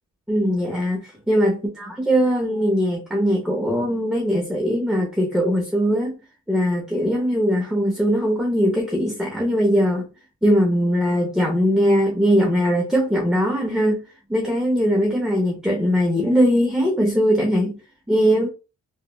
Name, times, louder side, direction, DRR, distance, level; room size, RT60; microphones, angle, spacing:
voice 1, 0.3-6.2 6.5-10.0 10.4-14.0 14.3-17.8 18.1-18.5, equal, ahead, 0.6 m, -20 dB
3.3 x 2.1 x 2.2 m
cardioid pair, 90°, 30 cm